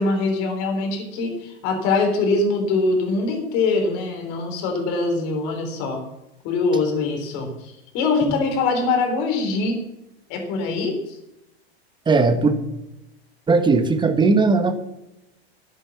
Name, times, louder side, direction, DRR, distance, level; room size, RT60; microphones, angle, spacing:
voice 1, 0.0-6.0 6.4-9.9 10.3-11.2, left 3 dB, 55° left, 3 dB, 3.7 m, -23 dB
voice 2, 12.1-12.5 13.5-14.7, right 4 dB, 15° right, 8 dB, 1.4 m, -18 dB
11.0 x 8.5 x 7.1 m, 0.90 s
supercardioid pair, 130°, 32 cm